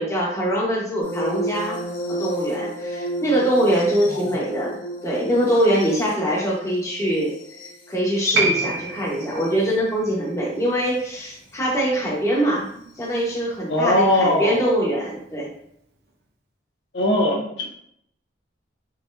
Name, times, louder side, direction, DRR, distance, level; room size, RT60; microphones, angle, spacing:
voice 1, 0.0-1.8 2.1-4.8 5.0-7.3 7.9-15.5, equal, 15° left, -4 dB, 0.9 m, -23 dB
sound 1, 1.0-9.7 11.0-11.3 13.0-13.1, equal, 85° left, 1.0 m, -33 dB
Piano, 8.3-15.3 15.6-15.7, right 3 dB, 60° right, 0.5 m, -31 dB
voice 2, 13.7-14.7 16.9-17.6, left 1 dB, 70° left, -1 dB, 0.7 m, -20 dB
4.1 x 2.8 x 2.5 m, 0.71 s
head